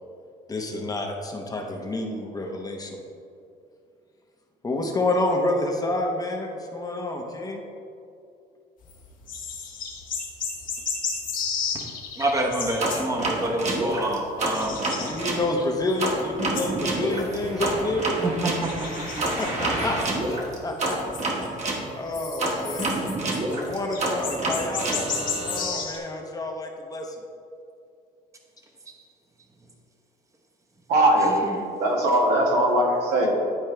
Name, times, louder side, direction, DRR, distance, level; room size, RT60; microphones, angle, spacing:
voice 1, 0.5-3.0 4.6-7.6 14.7-18.1 19.3-20.0 20.2-21.6 21.9-23.0 23.5-27.2, left 2 dB, 20° left, 1 dB, 0.8 m, -29 dB
sound 1, 8.8-13.6 13.9-15.8 16.1-18.1 18.6-20.6 20.9-21.7 22.1-26.0, left 5 dB, 55° left, 1.3 m, -33 dB
voice 2, 12.2-15.1 18.2-18.9 19.2-19.3 31.4-31.6, right 1 dB, 20° right, 1 dB, 1.0 m, -27 dB
sound 2, 12.8-15.4 16.0-21.8 22.4-25.6, right 2 dB, 45° right, 1.4 m, -28 dB
voice 3, 30.9-31.4 31.8-33.3, right 1 dB, 80° right, -1 dB, 1.6 m, -20 dB
10.5 x 4.5 x 3.3 m, 2.5 s
cardioid pair, 110°, 17 cm